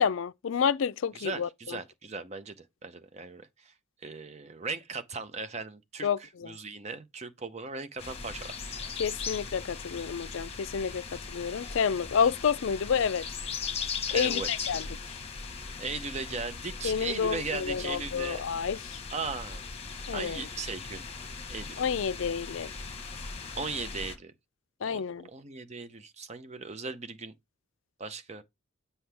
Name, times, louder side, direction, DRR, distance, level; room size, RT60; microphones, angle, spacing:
voice 1, 0.0-1.8 6.0-6.6 9.0-13.3 14.1-14.8 16.8-19.0 20.1-20.5 21.8-22.7 24.8-25.3, left 6 dB, 65° left, 0.4 m, -29 dB
voice 2, 1.1-3.7 4.0-8.9 14.1-14.7 15.8-18.4 19.1-19.6 20.1-21.0 21.5-21.8 23.6-24.3 24.8-27.3 28.0-28.4, right 4 dB, 30° right, 0.6 m, -38 dB
sound 1, 8.0-24.2, left 5 dB, 30° left, 1.0 m, -39 dB
7.8 x 5.6 x 3.4 m
head